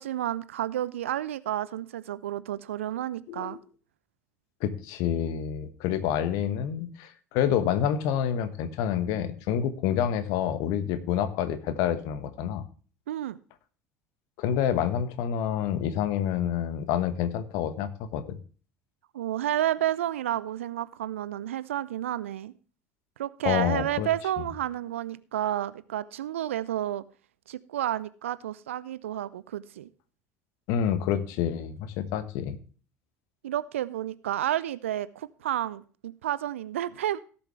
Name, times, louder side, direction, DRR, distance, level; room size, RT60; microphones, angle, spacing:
voice 1, 0.0-3.6 13.1-13.4 19.1-22.5 23.2-27.0 27.5-29.9 33.4-37.2, right 12 dB, 70° right, 17 dB, 0.6 m, -31 dB
voice 2, 3.3-3.6 4.6-12.6 14.4-18.4 23.4-24.1 24.4-24.5 30.7-32.6, left 9 dB, 55° left, 12 dB, 1.3 m, -28 dB
17.5 x 7.3 x 3.2 m, 0.39 s
figure-of-eight pair, 65°, 7 cm